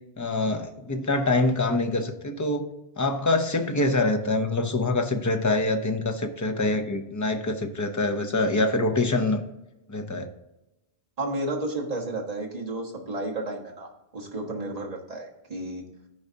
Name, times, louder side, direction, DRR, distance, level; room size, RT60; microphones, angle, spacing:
voice 1, 0.2-2.7 3.0-9.4 9.9-10.3, left 2 dB, 20° left, 6 dB, 0.6 m, -25 dB
voice 2, 11.2-15.8, right 2 dB, 40° right, -1 dB, 1.4 m, -32 dB
14.0 x 4.7 x 2.8 m, 0.96 s
omnidirectional pair, 1.1 m